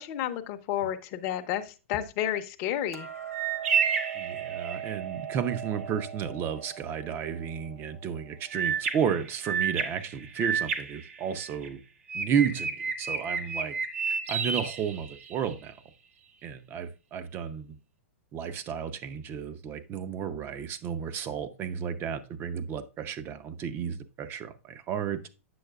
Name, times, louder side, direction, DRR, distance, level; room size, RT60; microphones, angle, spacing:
voice 1, 0.0-3.1, left 11 dB, 45° left, 0.7 m, -31 dB
Hammer, 2.9-9.2, right 10 dB, 85° right, 0.6 m, -40 dB
sound 1, 3.3-5.0 8.5-11.7 12.1-15.5, right 6 dB, 70° right, 1.0 m, -31 dB
voice 2, 4.1-11.8 12.1-13.8 14.1-15.7 16.4-17.8 18.3-25.2, right 8 dB, 30° right, 0.6 m, -32 dB
7.8 x 6.4 x 2.3 m
hypercardioid pair, 125°, 7 cm